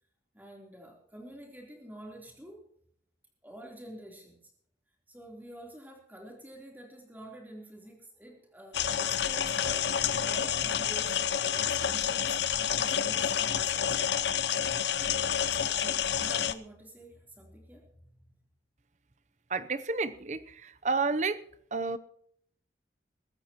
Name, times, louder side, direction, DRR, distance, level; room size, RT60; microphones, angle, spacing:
voice 1, 0.3-2.7 3.4-4.4 5.1-9.9 10.2-14.1 14.9-18.1, right 1 dB, 10° right, 0 dB, 3.5 m, -48 dB
sound 1, 8.7-16.5, left 8 dB, 70° left, 0.7 m, -29 dB
voice 2, 19.5-21.4 21.7-22.0, right 4 dB, 40° right, 14 dB, 0.7 m, -30 dB
22.5 x 13.5 x 3.0 m, 0.66 s
head